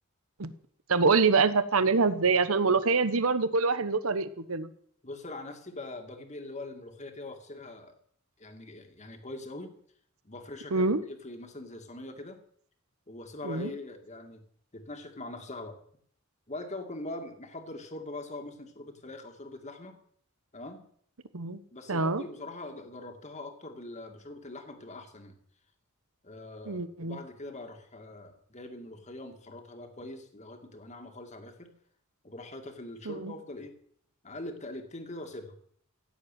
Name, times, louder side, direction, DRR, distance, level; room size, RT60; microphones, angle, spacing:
voice 1, 0.9-4.7 10.7-11.0 13.4-13.7 21.3-21.6 21.9-22.2 26.7-27.2 33.0-33.3, right 4 dB, 75° right, 13 dB, 1.1 m, -25 dB
voice 2, 5.0-7.9 8.4-9.7 10.2-12.4 13.1-14.4 14.7-15.8 16.5-20.0 20.5-20.8 21.7-25.4 26.2-31.7 32.2-33.8 34.2-35.6, left 2 dB, 35° left, 5 dB, 2.3 m, -42 dB
15.5 x 8.0 x 9.2 m, 0.62 s
head